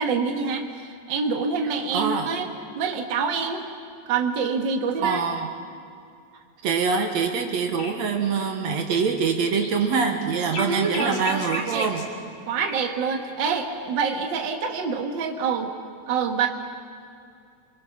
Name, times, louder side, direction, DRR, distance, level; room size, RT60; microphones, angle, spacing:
voice 1, 0.0-2.5 2.8-3.6 4.1-5.2 10.6-11.9 12.5-15.7 16.1-16.5, right 5 dB, 45° right, 4 dB, 2.1 m, -26 dB
voice 2, 1.9-2.3 5.0-5.5 6.6-12.1, right 5 dB, 70° right, 5 dB, 2.5 m, -24 dB
sound 1, 7.2-7.3 7.5-7.6 7.8-8.3 8.8-12.1 12.6-12.9 14.3-14.4, left 2 dB, 85° left, 4.5 m, -36 dB
29.5 x 24.5 x 5.9 m, 2.4 s
omnidirectional pair, 3.3 m